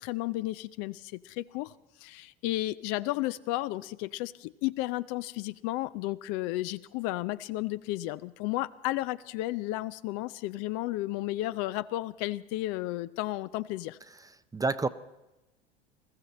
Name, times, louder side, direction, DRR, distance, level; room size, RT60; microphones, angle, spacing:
voice 1, 0.0-1.7 2.0-14.0, left 17 dB, 50° left, 15 dB, 0.6 m, -33 dB
voice 2, 14.1-14.9, right 3 dB, 10° right, 13 dB, 0.6 m, -31 dB
20.5 x 14.5 x 4.2 m, 0.99 s
hypercardioid pair, 80°, 30 cm